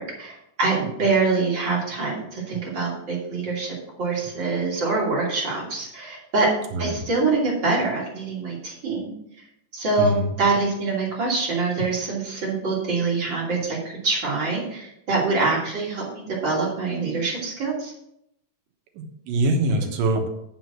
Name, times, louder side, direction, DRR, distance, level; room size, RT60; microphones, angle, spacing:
voice 1, 0.0-6.5 6.8-9.1 9.7-17.9, right 3 dB, 35° right, -4 dB, 3.1 m, -25 dB
voice 2, 19.0-20.3, right 1 dB, 80° right, 4 dB, 2.8 m, -23 dB
7.7 x 6.2 x 6.1 m, 0.79 s
omnidirectional pair, 3.9 m